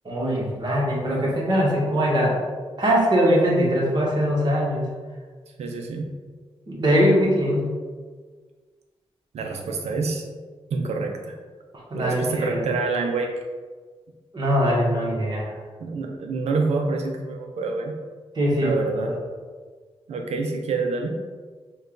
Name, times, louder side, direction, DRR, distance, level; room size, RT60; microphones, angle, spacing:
voice 1, 0.0-2.4 2.8-4.9 6.7-7.7 11.7-12.6 14.3-15.5 18.3-19.1, equal, 40° right, -4 dB, 1.4 m, -22 dB
voice 2, 5.6-6.1 9.3-10.3 10.7-11.4 11.9-13.3 15.8-18.0 18.6-19.1 20.1-21.2, right 3 dB, 80° right, 3 dB, 0.6 m, -27 dB
5.2 x 2.4 x 3.8 m, 1.5 s
cardioid pair, 90°, 11 cm